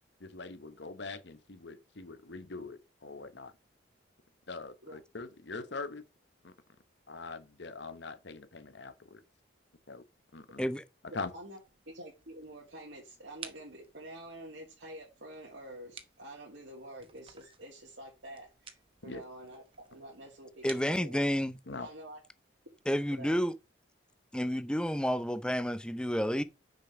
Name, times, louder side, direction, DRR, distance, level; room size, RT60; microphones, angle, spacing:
voice 1, 0.2-3.5 4.5-6.1 6.4-6.5 7.1-9.2 9.9-10.0 10.3-10.7 11.1-11.3 19.0-19.2 21.7-21.9, left 3 dB, 65° left, 1.0 m, -43 dB
voice 2, 11.1-11.6 11.9-18.8 19.0-21.2 21.7-22.2 23.2-23.4, right 1 dB, 70° right, 2.5 m, -48 dB
sound 1, 11.6-21.5, right 6 dB, 30° right, 0.9 m, -54 dB
voice 3, 20.6-21.5 22.9-23.5 24.3-26.4, equal, 5° left, 0.5 m, -30 dB
6.4 x 5.3 x 5.7 m
head